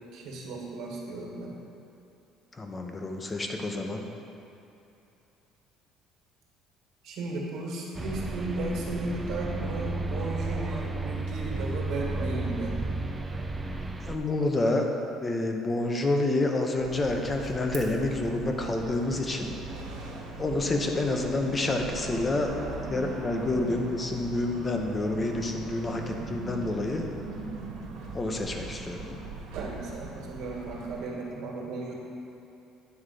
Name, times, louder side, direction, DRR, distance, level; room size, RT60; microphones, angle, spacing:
voice 1, 0.1-1.5 7.0-12.8 29.5-31.9, right 2 dB, 65° right, -2 dB, 1.7 m, -35 dB
voice 2, 2.5-4.0 14.1-14.8 15.2-19.5 20.4-22.5 22.9-27.1 28.1-29.2, left 2 dB, 20° left, 3 dB, 0.8 m, -28 dB
sound 1, 7.9-14.2, right 2 dB, 10° right, 0.5 m, -33 dB
sound 2, 16.8-31.0, right 3 dB, 85° right, 1.4 m, -40 dB
9.4 x 3.7 x 6.6 m, 2.9 s
cardioid pair, 120°, 0 cm